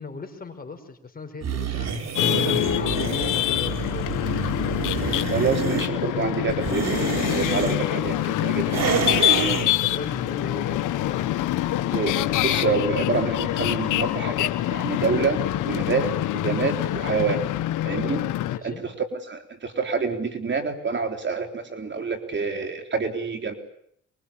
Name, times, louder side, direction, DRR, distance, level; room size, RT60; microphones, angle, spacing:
voice 1, 0.0-4.2 9.3-11.5 18.4-18.8, left 4 dB, 30° left, 6 dB, 5.4 m, -37 dB
sound 1, 1.4-5.9 6.5-7.8 8.7-9.7, right 6 dB, 60° right, 4.0 m, -28 dB
sound 2, 2.2-18.6, left 14 dB, 90° left, 1.4 m, -25 dB
voice 2, 5.3-9.0 11.9-17.4 17.8-18.2 18.6-23.5, right 5 dB, 40° right, 5 dB, 3.9 m, -27 dB
24.5 x 23.5 x 8.8 m, 0.70 s
cardioid pair, 90°, 30 cm